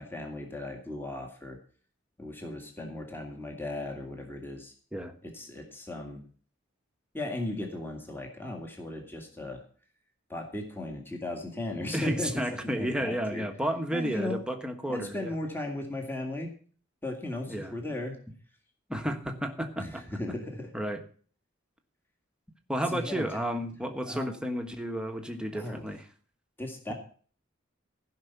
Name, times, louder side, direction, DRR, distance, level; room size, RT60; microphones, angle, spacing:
voice 1, 0.0-1.6 2.2-4.7 5.2-6.2 7.1-9.6 10.3-13.5 13.9-14.4 14.9-16.5 17.0-18.2 19.8-20.7 22.9-23.4 23.8-24.3 25.5-25.8 26.6-26.9, left 1 dB, 10° left, 2 dB, 2.0 m, -36 dB
voice 2, 11.9-15.3 17.5-17.7 18.9-20.0 20.7-21.0 22.7-26.0, equal, 5° right, 5 dB, 1.3 m, -32 dB
15.5 x 5.7 x 6.9 m, 0.43 s
head